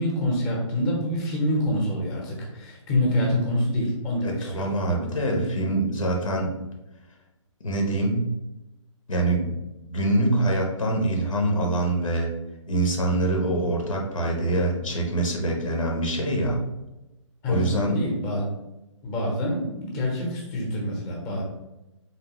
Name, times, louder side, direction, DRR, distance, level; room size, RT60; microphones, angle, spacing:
voice 1, 0.0-4.7 17.4-18.5 19.0-21.4, left 1 dB, 20° left, -2 dB, 0.9 m, -26 dB
voice 2, 4.2-6.6 7.6-8.3 9.1-9.5 9.9-12.3 12.7-16.6 17.5-17.9, right 1 dB, 85° left, 1 dB, 1.2 m, -24 dB
3.8 x 3.1 x 3.0 m, 0.96 s
hypercardioid pair, 145°, 17 cm